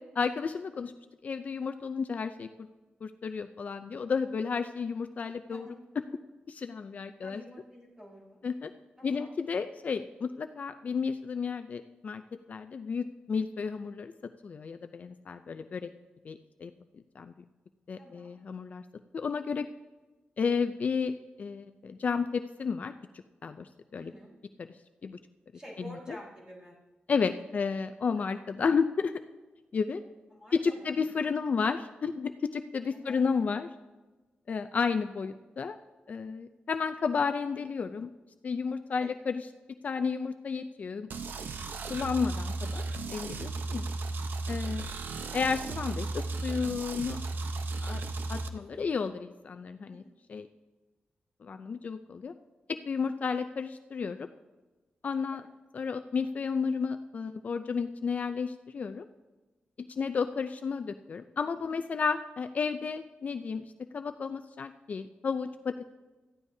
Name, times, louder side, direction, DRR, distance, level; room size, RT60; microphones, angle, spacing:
voice 1, 0.2-0.9 1.2-2.7 3.0-5.7 6.5-7.4 8.4-8.7 9.0-12.2 12.5-14.1 14.4-15.9 16.2-16.7 17.2-17.3 17.9-18.8 19.1-19.7 20.4-22.9 23.4-24.1 24.6-24.7 25.0-25.2 25.8-26.2 27.1-29.1 29.7-30.0 30.5-33.7 34.5-35.8 36.1-38.1 38.4-39.5 39.8-41.1 41.9-42.8 43.1-43.9 44.5-44.9 45.3-47.2 47.8-48.0 48.3-50.0 50.3-50.5 51.4-52.3 52.7-54.3 55.0-55.4 55.7-59.1 59.8-63.6 63.9-65.9, left 5 dB, 45° left, 9 dB, 0.4 m, -32 dB
voice 2, 7.2-8.4 9.0-9.3 18.0-18.3 23.9-24.3 25.5-26.7 28.2-28.4 30.3-31.0 32.9-33.2 38.9-39.1 45.0-45.2 48.5-48.8 49.9-50.1 55.3-55.5 61.6-61.8, equal, 20° right, -4 dB, 4.0 m, -50 dB
sound 1, 41.1-48.5, right 3 dB, 75° right, 0.8 m, -35 dB
18.0 x 13.5 x 2.7 m, 1.2 s
wide cardioid pair, 160°, 3 cm